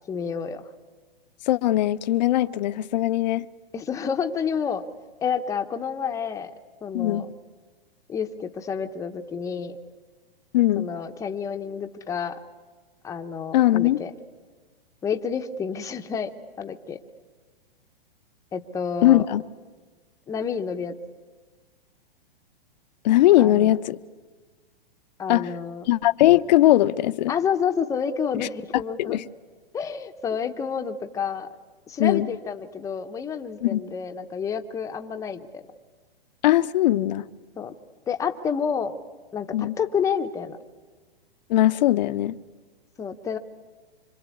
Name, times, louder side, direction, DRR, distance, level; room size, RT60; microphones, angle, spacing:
voice 1, 0.1-0.6 3.7-4.8 5.2-6.5 6.8-7.3 8.1-9.8 10.8-12.4 13.0-14.1 15.0-16.3 16.6-17.0 18.5-19.3 20.3-20.9 23.4-23.7 25.2-25.9 27.3-29.2 29.7-31.5 31.9-35.6 37.6-37.7 38.1-39.0 39.3-40.6 43.0-43.4, left 6 dB, 10° left, 0.9 m, -29 dB
voice 2, 1.5-3.5 6.9-7.2 10.5-10.9 13.5-14.0 19.0-19.4 23.0-24.0 25.3-25.5 25.9-27.3 28.3-28.5 29.1-29.2 32.0-32.3 33.6-33.8 36.4-37.3 39.5-39.7 41.5-42.4, left 14 dB, 45° left, 0.8 m, -20 dB
26.0 x 25.5 x 8.5 m
hypercardioid pair, 145°, 30 cm